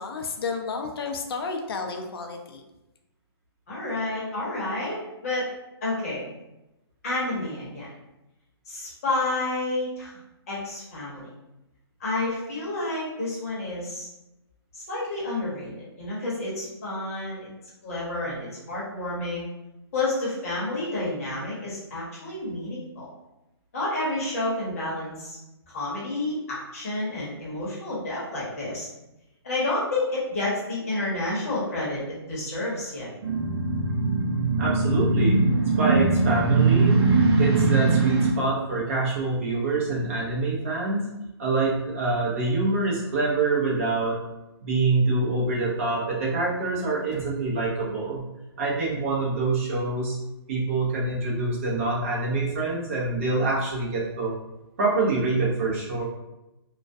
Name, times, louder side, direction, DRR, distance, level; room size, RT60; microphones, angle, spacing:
voice 1, 0.0-2.6, left 4 dB, 60° left, 3 dB, 0.4 m, -32 dB
voice 2, 3.7-5.5 5.8-6.2 7.0-7.9 8.7-10.1 10.5-11.3 12.0-14.1 14.7-17.5 17.8-19.5 19.9-23.1 23.7-25.4 25.7-28.9 29.4-33.1, left 2 dB, 35° left, -7 dB, 0.8 m, -30 dB
sound 1, 33.2-38.3, right 3 dB, 75° right, 0.6 m, -21 dB
voice 3, 34.6-35.4 35.8-37.0 37.3-41.1 41.4-44.2 44.6-48.2 48.6-50.2 50.5-54.3 54.8-56.0, right 3 dB, 30° right, -5 dB, 0.6 m, -25 dB
2.3 x 2.1 x 2.5 m, 0.96 s
hypercardioid pair, 175°, 14 cm